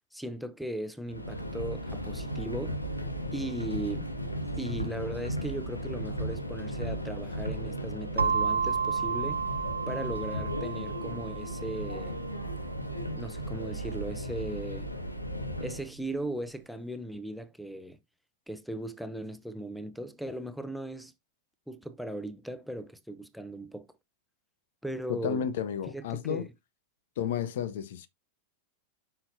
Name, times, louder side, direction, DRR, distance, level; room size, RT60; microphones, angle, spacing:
voice 1, 0.1-2.8 3.3-4.1 4.6-9.4 9.9-12.2 13.1-14.9 15.6-18.0 18.5-21.1 21.7-23.9 24.8-25.5 25.9-26.5, right 1 dB, ahead, 0.8 m, -38 dB
Subway metro underground, 1.1-15.9, equal, 85° left, 1.2 m, -36 dB
sound 1, 8.2-16.0, right 6 dB, 75° right, 0.3 m, -33 dB
voice 2, 25.1-26.5 27.2-28.1, left 8 dB, 55° left, 0.8 m, -32 dB
7.8 x 5.9 x 2.7 m
figure-of-eight pair, 90°, 0 cm